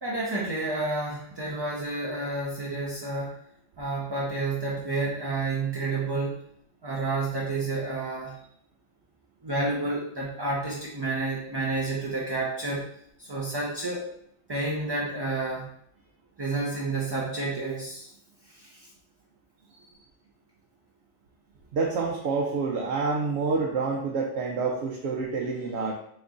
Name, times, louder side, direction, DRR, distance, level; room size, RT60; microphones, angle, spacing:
voice 1, 0.0-3.3 3.8-6.4 6.8-8.4 9.4-12.9 13.2-14.0 14.5-15.7 16.4-18.1 18.5-18.9, right 2 dB, 30° right, -5 dB, 0.5 m, -30 dB
voice 2, 21.7-25.9, right 4 dB, 90° right, -1 dB, 0.9 m, -28 dB
3.8 x 3.1 x 3.6 m, 0.70 s
omnidirectional pair, 1.1 m